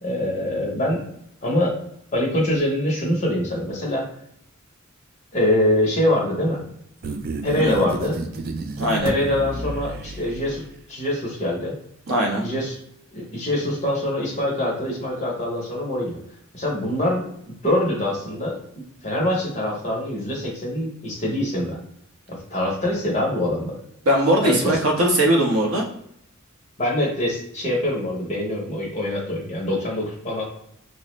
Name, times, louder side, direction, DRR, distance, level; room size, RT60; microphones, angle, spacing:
voice 1, 0.0-1.0 1.4-1.7 2.1-4.0 5.3-6.6 7.4-8.1 9.0-10.6 10.9-11.7 12.4-12.8 13.1-16.2 16.5-17.3 17.6-18.6 19.0-21.8 22.3-23.7 24.4-24.8 26.8-30.4, left 1 dB, 35° left, -3 dB, 0.9 m, -24 dB
sound 1, 7.0-10.7, right 3 dB, 45° right, 0.4 m, -31 dB
voice 2, 8.8-9.1 12.1-12.4 24.1-25.8, right 1 dB, 90° right, -2 dB, 1.0 m, -20 dB
4.3 x 2.1 x 3.1 m, 0.71 s
head